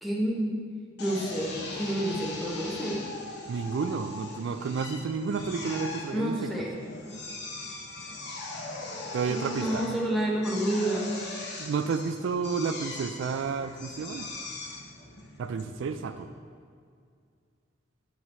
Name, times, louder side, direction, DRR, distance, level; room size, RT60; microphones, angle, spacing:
voice 1, 0.0-0.6 1.0-3.0 6.1-6.8 7.1-7.2 9.3-11.1, right 1 dB, ahead, -4 dB, 1.0 m, -29 dB
Drill, 1.0-16.3, left 2 dB, 60° left, 0.9 m, -40 dB
voice 2, 3.5-6.3 9.1-9.8 11.6-14.3 15.4-16.3, right 5 dB, 70° right, 9 dB, 0.3 m, -31 dB
8.1 x 4.7 x 4.3 m, 2.2 s
head